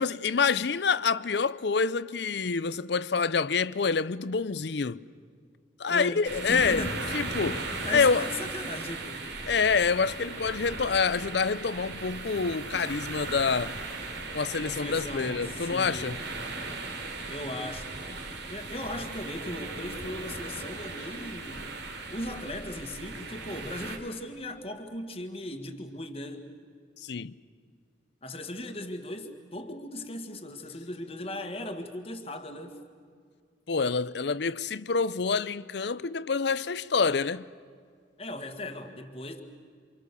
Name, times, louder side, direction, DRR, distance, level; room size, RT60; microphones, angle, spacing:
voice 1, 0.0-5.0 5.8-6.9 7.1-8.3 9.4-13.7 14.3-16.2 27.0-27.3 33.7-37.4, left 5 dB, 65° left, 0.6 m, -27 dB
voice 2, 5.9-7.0 7.7-9.3 14.7-16.2 17.3-18.0 18.5-21.7 22.1-26.5 28.2-32.8 38.2-39.4, left 1 dB, 30° left, 1.8 m, -38 dB
sound 1, 6.2-24.0, right 3 dB, 70° right, 3.2 m, -37 dB
28.5 x 26.5 x 6.9 m
head